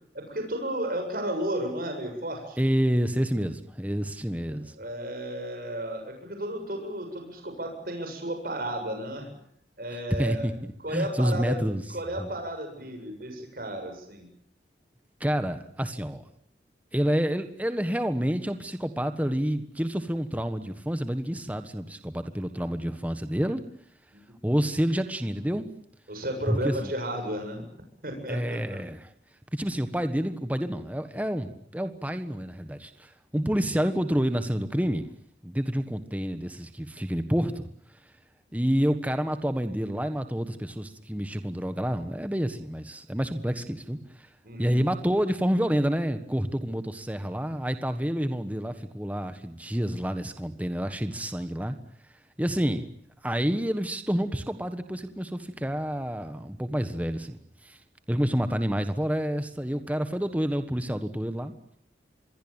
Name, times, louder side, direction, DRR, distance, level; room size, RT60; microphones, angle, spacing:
voice 1, 0.1-2.6 4.8-9.3 9.8-10.5 10.8-11.6 11.9-14.3 24.1-24.2 26.1-27.6 28.0-28.8 44.4-44.8, right 1 dB, 55° right, 4 dB, 7.6 m, -33 dB
voice 2, 2.6-4.7 10.2-10.5 10.9-11.8 12.2-12.3 15.2-16.2 16.9-23.6 24.4-25.7 26.5-26.9 28.3-29.1 29.5-35.1 35.4-37.7 38.5-44.3 44.6-51.8 52.4-52.9 53.2-57.8 58.1-61.5, equal, 10° right, 9 dB, 1.4 m, -28 dB
26.5 x 22.0 x 8.9 m, 0.68 s
head